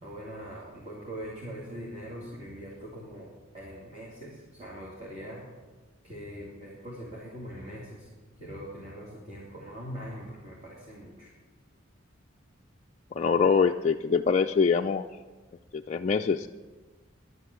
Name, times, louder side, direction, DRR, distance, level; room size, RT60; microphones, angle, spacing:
voice 1, 0.0-5.5 6.0-8.1 8.4-11.3, equal, 30° right, -5 dB, 2.7 m, -42 dB
voice 2, 13.1-15.1 15.7-16.5, left 5 dB, 35° left, 3 dB, 0.3 m, -24 dB
11.0 x 10.5 x 7.3 m, 1.3 s
head